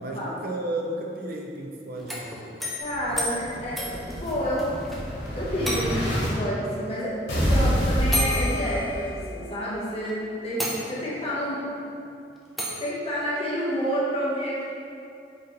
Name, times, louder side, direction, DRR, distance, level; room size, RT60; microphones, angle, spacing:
voice 1, 0.0-2.5 3.1-3.2, right 1 dB, 55° right, 0 dB, 0.5 m, -33 dB
sound 1, 2.0-5.0 5.3-5.4 5.6-6.2 7.3-7.4 8.1-9.5 10.0-10.1 10.6-11.3 12.6-12.9, equal, ahead, 0.5 m, -32 dB
voice 2, 2.8-4.8 5.4-11.7 12.8-14.6, equal, 35° left, -8 dB, 0.9 m, -29 dB
Explosion, 2.9-6.3 7.3-9.3, equal, 90° left, 1.2 m, -27 dB
5.0 x 3.0 x 2.9 m, 2.5 s
head